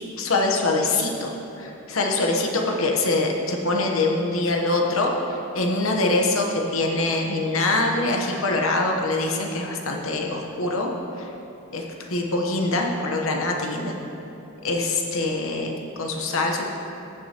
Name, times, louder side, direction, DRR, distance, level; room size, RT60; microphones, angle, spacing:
voice 1, 0.2-1.3 1.6-10.9 11.2-11.3 11.7-11.8 12.1-13.9 14.6-16.6, left 2 dB, 65° left, 1 dB, 1.0 m, -24 dB
14.5 x 6.3 x 2.9 m, 3.0 s
head